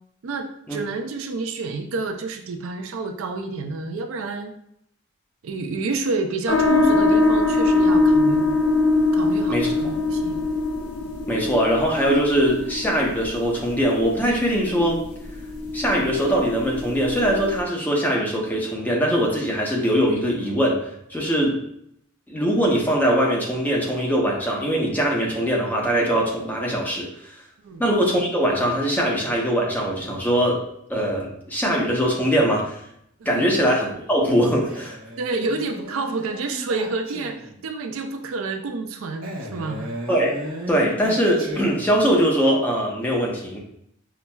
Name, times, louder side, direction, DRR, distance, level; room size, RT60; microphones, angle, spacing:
voice 1, 0.2-4.5 5.4-8.6 9.1-10.4 27.6-27.8 33.2-33.4 35.2-40.0, right 3 dB, 65° right, 5 dB, 0.4 m, -29 dB
sound 1, 6.5-17.6, left 2 dB, 85° left, 0.7 m, -23 dB
voice 2, 11.3-15.0 15.7-21.6 22.3-27.4 27.8-30.6 30.9-32.8 33.3-35.0 40.1-40.3 40.7-43.6, equal, 10° left, -2 dB, 0.6 m, -22 dB
Male speech man speaking, 34.6-37.7 39.2-42.2, equal, 80° right, 1.1 m, -35 dB
5.7 x 2.0 x 2.2 m, 0.74 s
head